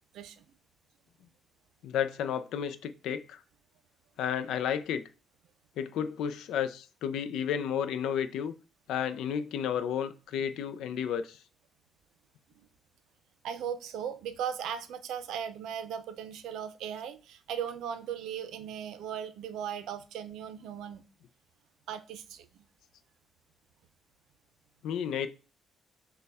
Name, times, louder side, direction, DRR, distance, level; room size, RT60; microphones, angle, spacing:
voice 1, 0.1-0.4 12.6-12.7 13.4-21.0 21.9-22.7, right 8 dB, 85° right, 0.5 m, -38 dB
voice 2, 1.8-3.4 4.2-5.0 5.8-8.5 8.9-11.4 24.8-25.3, left 8 dB, 85° left, 0.4 m, -32 dB
6.6 x 2.2 x 3.5 m
cardioid pair, 90°, 0 cm